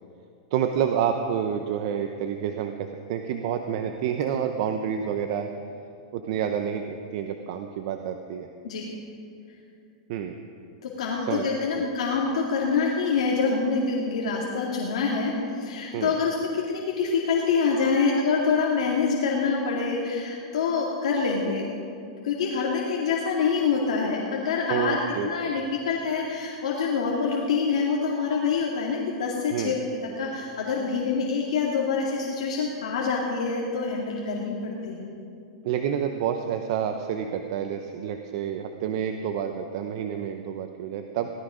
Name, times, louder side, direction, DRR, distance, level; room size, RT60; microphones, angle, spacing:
voice 1, 0.5-5.5 6.1-8.5 10.1-10.4 11.3-11.5 11.8-11.9 15.9-16.1 24.7-25.5 29.5-29.8 35.6-41.3, right 8 dB, 50° right, 6 dB, 0.8 m, -29 dB
voice 2, 8.6-9.0 10.8-21.7 22.2-25.0 25.2-29.8 30.2-35.1, left 5 dB, 75° left, -3 dB, 2.2 m, -26 dB
17.0 x 13.0 x 5.0 m, 2.6 s
supercardioid pair, 155°, 3 cm